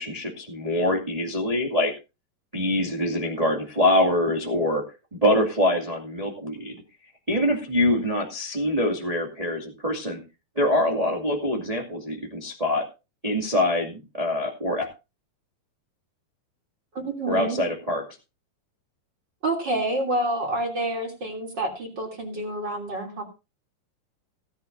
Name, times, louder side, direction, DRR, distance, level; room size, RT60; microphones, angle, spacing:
voice 1, 0.0-1.9 2.5-4.8 5.1-6.8 7.3-10.2 10.5-12.8 13.2-14.9 17.3-18.0, left 1 dB, 15° right, 0 dB, 1.7 m, -24 dB
voice 2, 16.9-17.6 19.4-23.2, right 1 dB, 30° right, 2 dB, 3.4 m, -28 dB
17.5 x 11.5 x 2.7 m, 0.29 s
omnidirectional pair, 4.1 m